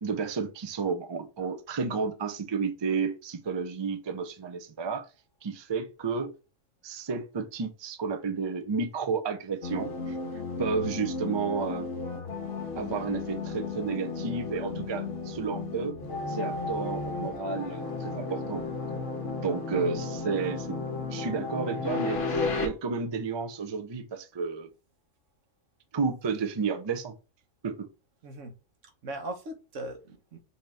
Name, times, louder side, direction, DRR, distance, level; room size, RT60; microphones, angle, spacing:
voice 1, 0.0-5.1 5.4-6.3 6.8-10.2 10.6-11.9 12.8-16.0 16.3-18.6 19.4-20.8 21.1-24.7 25.9-27.1 27.6-27.9, right 5 dB, 40° right, 0.3 m, -32 dB
sound 1, 9.6-22.7, left 3 dB, 70° left, 1.5 m, -34 dB
voice 2, 10.8-11.1 19.7-20.0 28.2-28.5 28.8-30.4, right 1 dB, 75° right, 1.3 m, -39 dB
5.7 x 2.8 x 3.3 m
omnidirectional pair, 1.3 m